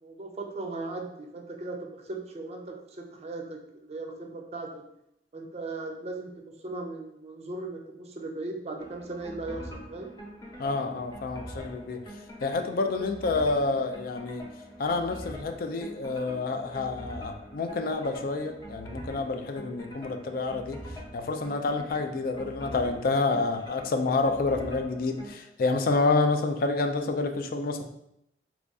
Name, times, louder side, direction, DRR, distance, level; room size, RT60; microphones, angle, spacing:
voice 1, 0.0-4.8 5.3-10.1, right 2 dB, 40° right, 3 dB, 0.5 m, -38 dB
sound 1, 8.8-25.4, equal, 20° left, 0.8 m, -44 dB
voice 2, 10.6-12.0 12.4-14.5 14.8-20.8 21.1-27.8, left 3 dB, 55° left, 6 dB, 0.3 m, -28 dB
3.1 x 2.6 x 3.4 m, 0.80 s
head